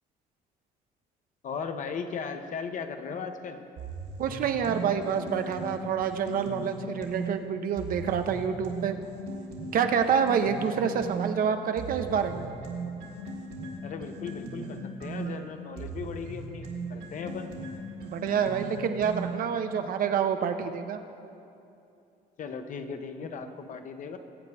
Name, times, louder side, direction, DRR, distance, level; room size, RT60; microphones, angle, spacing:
voice 1, 1.4-3.6 13.8-17.5 22.4-24.2, left 5 dB, 50° left, 7 dB, 0.9 m, -37 dB
sound 1, 3.8-7.3 7.8-11.3 11.8-19.6, right 3 dB, 70° right, 2.1 m, -38 dB
voice 2, 4.2-9.0 9.7-12.5 18.0-21.0, right 7 dB, 55° right, 7 dB, 0.8 m, -27 dB
21.5 x 8.2 x 3.4 m, 2.7 s
cardioid pair, 110°, 17 cm